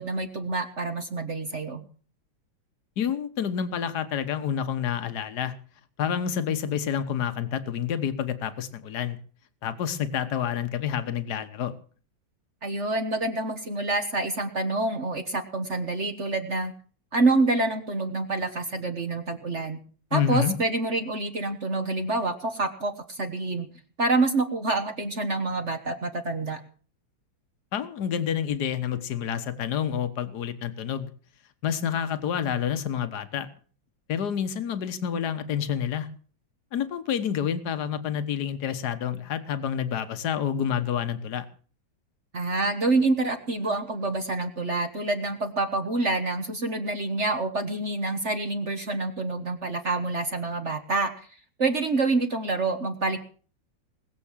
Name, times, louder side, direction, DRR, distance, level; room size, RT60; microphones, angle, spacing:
voice 1, 0.0-1.8 12.6-16.7 17.1-19.8 20.1-23.7 24.0-26.6 42.3-51.3 51.6-53.2, right 2 dB, 40° right, 7 dB, 1.4 m, -27 dB
voice 2, 3.0-5.5 6.0-9.2 9.6-11.7 20.1-20.5 27.7-31.1 31.6-33.5 34.1-36.1 36.7-41.5, left 8 dB, 60° left, 12 dB, 1.7 m, -28 dB
20.0 x 7.8 x 7.4 m, 0.42 s
omnidirectional pair, 2.1 m